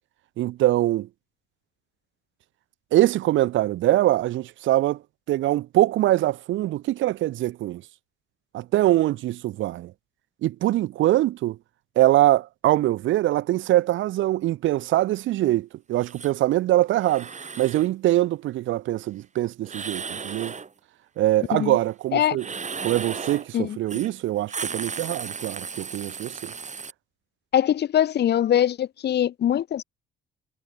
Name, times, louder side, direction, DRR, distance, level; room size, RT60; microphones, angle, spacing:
voice 1, 0.4-1.1 2.9-5.0 5.3-7.8 8.5-9.9 10.4-11.6 12.0-17.3 17.6-20.6 21.2-22.5 22.8-26.5, right 15 dB, 75° right, 0.7 m, -23 dB
sound 1, 16.0-16.3 17.0-17.9 19.6-20.7 22.3-23.5 23.9-24.1 24.4-26.9, right 5 dB, 35° right, 5.6 m, -35 dB
voice 2, 27.5-29.8, left 10 dB, 55° left, 0.9 m, -22 dB
cardioid pair, 90°, 20 cm